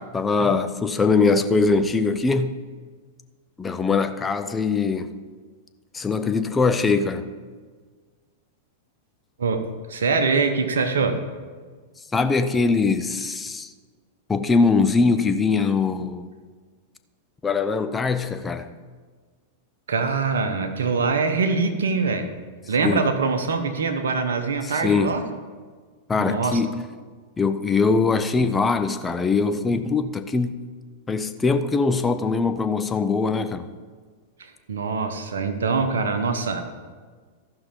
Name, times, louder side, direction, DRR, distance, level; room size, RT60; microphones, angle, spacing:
voice 1, 0.0-2.5 3.6-5.1 5.9-7.3 12.1-13.7 14.3-16.3 17.4-18.7 22.8-23.0 24.6-25.2 26.1-26.8 27.4-30.6 31.1-33.7, left 4 dB, 15° left, 10 dB, 0.7 m, -22 dB
voice 2, 9.4-11.2 19.9-22.3 22.7-25.2 26.2-26.6 34.4-36.6, right 4 dB, 75° right, 6 dB, 1.1 m, -24 dB
14.0 x 5.8 x 5.3 m, 1.5 s
hypercardioid pair, 100°, 0 cm